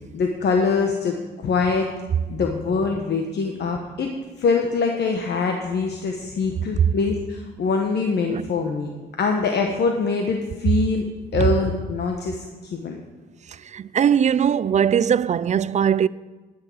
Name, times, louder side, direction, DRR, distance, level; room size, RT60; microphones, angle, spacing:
voice 1, 0.1-1.9 2.3-4.1 4.4-8.9 9.2-11.0 11.3-13.0, left 4 dB, 55° left, 1.2 m, -23 dB
voice 2, 13.5-16.1, right 8 dB, 35° right, 0.4 m, -20 dB
11.5 x 6.7 x 7.5 m
cardioid pair, 90°, 20 cm